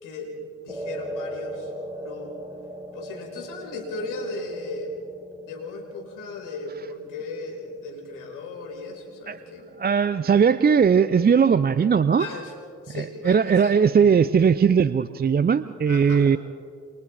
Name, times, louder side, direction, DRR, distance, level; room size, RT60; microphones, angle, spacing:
voice 1, 0.0-2.3 2.9-4.9 5.4-9.7 12.2-12.5 12.8-13.8 15.9-16.3, left 3 dB, 65° left, 0 dB, 4.8 m, -36 dB
sound 1, 0.7-9.2, right 1 dB, 10° right, 3.0 m, -39 dB
voice 2, 9.8-12.3 12.9-16.4, right 6 dB, 25° right, 14 dB, 0.6 m, -19 dB
28.5 x 27.5 x 3.5 m, 2.3 s
hypercardioid pair, 40°, 34 cm